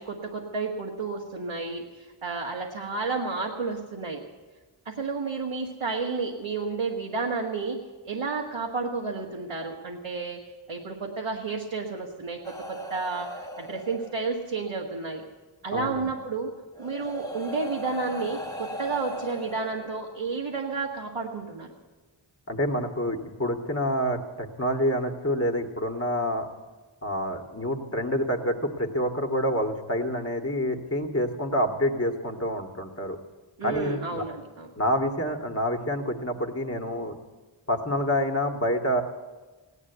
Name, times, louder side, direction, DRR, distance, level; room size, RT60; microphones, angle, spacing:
voice 1, 0.0-4.2 4.9-7.8 8.0-10.4 10.7-15.2 15.6-16.5 16.8-21.7 33.6-34.7, right 4 dB, 80° right, -2 dB, 1.7 m, -31 dB
sound 1, 12.4-14.6 15.9-16.0 16.7-20.4 21.4-21.6, equal, 5° left, 1.3 m, -38 dB
voice 2, 15.7-16.1 22.5-26.5 27.0-33.2 33.6-34.2 34.8-37.2 37.7-39.0, equal, 30° left, 3 dB, 2.0 m, -27 dB
16.5 x 11.0 x 8.1 m, 1.3 s
wide cardioid pair, 45°, 50 cm